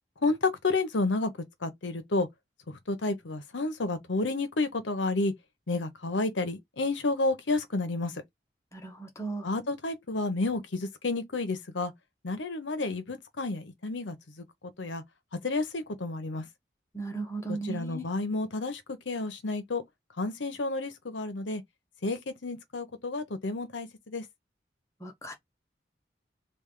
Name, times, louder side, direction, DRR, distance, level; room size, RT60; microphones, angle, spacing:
voice 1, 0.2-1.3 1.6-2.3 2.7-5.3 5.7-8.1 9.4-11.9 12.2-15.0 15.4-16.4 17.5-19.8 20.2-21.6 22.0-24.2, left 3 dB, 85° left, 0.9 m, -31 dB
voice 2, 8.7-9.4 16.9-18.0 25.0-25.3, right 3 dB, 15° left, 1.0 m, -36 dB
3.3 x 2.5 x 3.8 m
head